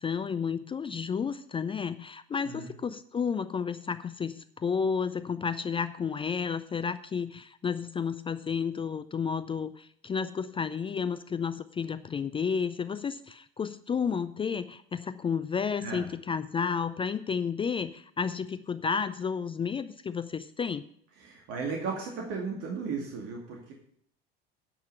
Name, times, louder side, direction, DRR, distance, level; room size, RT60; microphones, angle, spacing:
voice 1, 0.0-20.8, left 6 dB, 15° left, 13 dB, 0.4 m, -31 dB
voice 2, 21.2-23.7, right 5 dB, 50° right, 0 dB, 2.4 m, -35 dB
10.0 x 5.8 x 8.2 m, 0.66 s
figure-of-eight pair, 75°, 31 cm